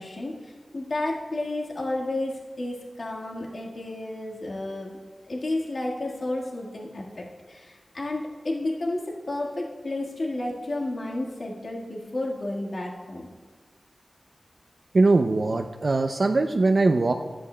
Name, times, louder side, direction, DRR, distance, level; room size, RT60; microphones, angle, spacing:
voice 1, 0.0-4.9 5.3-13.3, left 2 dB, 70° left, -3 dB, 1.5 m, -31 dB
voice 2, 14.9-17.1, right 3 dB, 60° right, 6 dB, 0.4 m, -21 dB
13.5 x 11.0 x 2.2 m, 1.4 s
wide cardioid pair, 55°, 0 cm